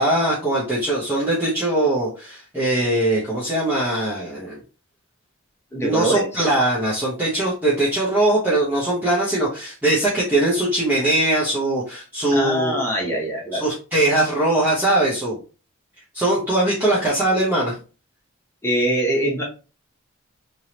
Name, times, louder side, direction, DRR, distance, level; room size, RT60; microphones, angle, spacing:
voice 1, 0.0-4.6 5.8-12.8 13.5-15.4 16.1-17.7, right 1 dB, 10° right, -9 dB, 1.0 m, -21 dB
voice 2, 5.7-6.4 12.3-13.7 18.6-19.4, right 1 dB, 10° left, -3 dB, 1.1 m, -23 dB
3.5 x 3.1 x 2.9 m, 0.34 s
head